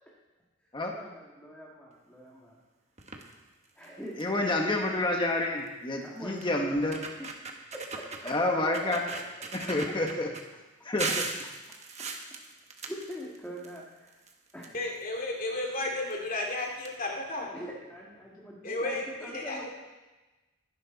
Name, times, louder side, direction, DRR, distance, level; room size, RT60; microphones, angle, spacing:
voice 1, 0.9-2.6 3.8-4.8 6.0-8.3 8.8-8.9 9.4-9.7 11.7-12.1 12.8-14.2 14.5-14.7 17.5-19.7, equal, 5° left, -5 dB, 2.2 m, -44 dB
sound 1, 3.0-3.3 3.8-3.9 4.2-4.5 5.7-5.8 6.4-6.5 6.8-8.4 8.7-10.4 11.0-13.8 14.1-15.2 16.1-16.2 16.5-16.6 16.8-16.9, right 4 dB, 30° right, 1.4 m, -37 dB
voice 2, 4.2-7.0 8.3-9.0 9.6-10.3 10.8-11.2, left 2 dB, 25° left, 1 dB, 1.3 m, -28 dB
voice 3, 14.7-17.5 18.6-19.7, left 2 dB, 40° left, -1 dB, 2.6 m, -33 dB
21.0 x 10.5 x 4.1 m, 1.2 s
head